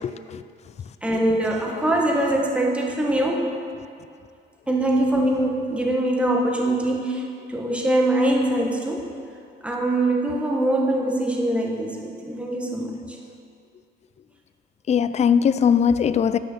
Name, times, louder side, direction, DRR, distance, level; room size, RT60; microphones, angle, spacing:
voice 1, 0.0-0.4 14.9-16.4, left 7 dB, 35° left, 0.4 m, -20 dB
voice 2, 1.0-3.5 4.7-9.1 9.6-13.2, right 1 dB, 5° right, 1.3 m, -23 dB
10.5 x 6.1 x 7.0 m
cardioid pair, 90°, 20 cm